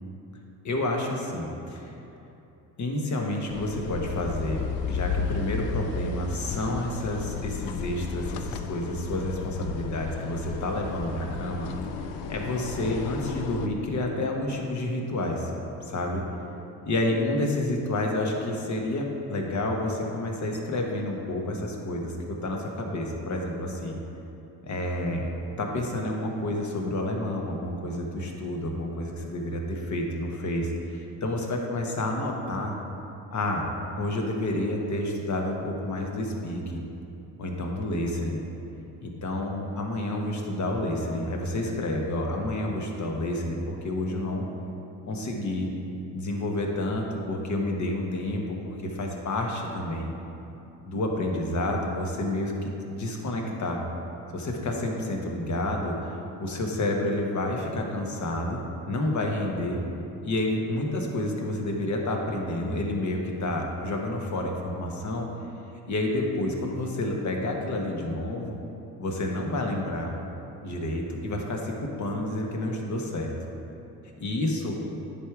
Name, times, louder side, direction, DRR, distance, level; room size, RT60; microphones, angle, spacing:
voice 1, 0.6-1.9 2.8-11.7 12.3-15.5 15.8-16.2 16.8-24.0 24.6-25.3 25.6-32.8 33.3-33.6 34.0-36.8 37.4-38.4 39.0-44.4 45.1-45.7 46.1-50.1 50.8-53.8 54.3-56.1 56.4-59.8 60.2-65.3 65.9-68.6 69.0-70.1 70.6-73.3 74.2-74.8, left 1 dB, 40° left, 1 dB, 1.3 m, -29 dB
sound 1, 3.5-13.7, left 5 dB, 85° left, 0.6 m, -33 dB
9.9 x 3.6 x 4.8 m, 2.9 s
supercardioid pair, 75°, 43 cm